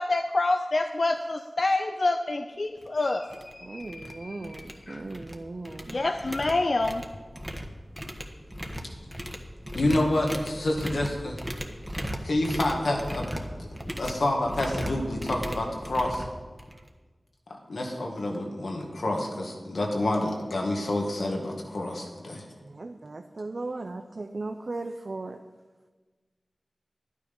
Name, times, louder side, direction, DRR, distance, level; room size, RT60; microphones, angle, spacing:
voice 1, 0.0-5.0 5.9-7.1, left 2 dB, 60° left, 6 dB, 0.5 m, -28 dB
sound 1, 2.8-2.9 3.3-3.5 3.8-4.1 4.4-5.4 5.7-16.9, equal, 5° right, 1.4 m, -37 dB
voice 2, 3.6-6.0 16.7-16.8 22.3-25.4, right 2 dB, 60° right, 6 dB, 0.6 m, -37 dB
voice 3, 9.7-11.4 11.9-13.3 13.5-13.7 14.0-16.2 17.7-22.4, left 1 dB, 85° left, 0 dB, 2.0 m, -28 dB
11.5 x 9.6 x 5.4 m, 1.3 s
wide cardioid pair, 50°, 0 cm